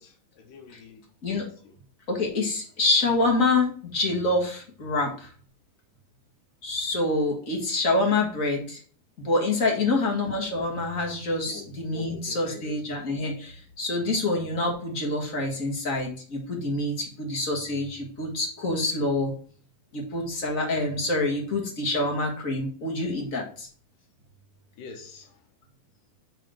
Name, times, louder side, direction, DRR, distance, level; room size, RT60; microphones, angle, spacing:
voice 1, 0.0-1.7 9.9-10.0 11.5-12.6 24.8-25.4, left 4 dB, 80° left, 4 dB, 2.7 m, -45 dB
voice 2, 2.1-5.3 6.6-8.8 9.2-19.3 19.9-23.7, left 2 dB, 30° left, 0 dB, 1.6 m, -26 dB
6.7 x 4.1 x 6.4 m, 0.43 s
omnidirectional pair, 3.8 m